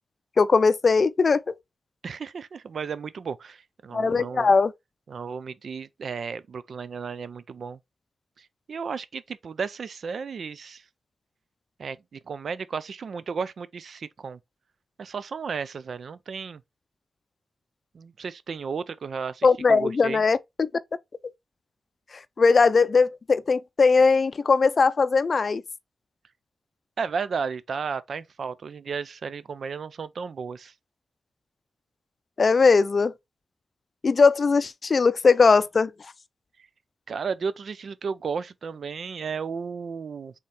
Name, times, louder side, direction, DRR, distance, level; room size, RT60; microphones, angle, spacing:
voice 1, 0.4-1.5 3.9-4.7 19.4-20.7 22.4-25.6 32.4-33.1 34.0-35.9, left 4 dB, 50° left, 0.4 m, -20 dB
voice 2, 2.0-4.5 5.1-7.8 8.7-10.8 11.8-14.4 15.0-16.6 17.9-20.2 27.0-30.7 37.1-40.3, right 5 dB, 70° right, 0.4 m, -33 dB
4.2 x 3.6 x 3.2 m
wide cardioid pair, 90°, 0 cm